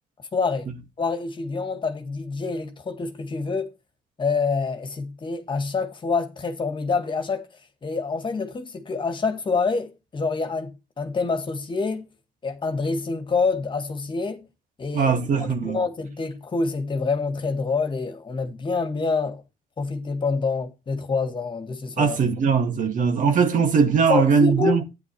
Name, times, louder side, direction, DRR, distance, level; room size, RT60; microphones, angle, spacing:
voice 1, 0.3-0.7 1.0-3.7 4.2-7.5 7.8-12.1 12.4-14.5 14.8-15.1 15.6-19.4 19.8-22.2 24.1-24.8, left 4 dB, 30° left, 1.9 m, -26 dB
voice 2, 14.9-15.8 22.0-24.8, right 5 dB, 50° right, 2.1 m, -20 dB
12.0 x 9.6 x 3.2 m
cardioid pair, 110°, 17 cm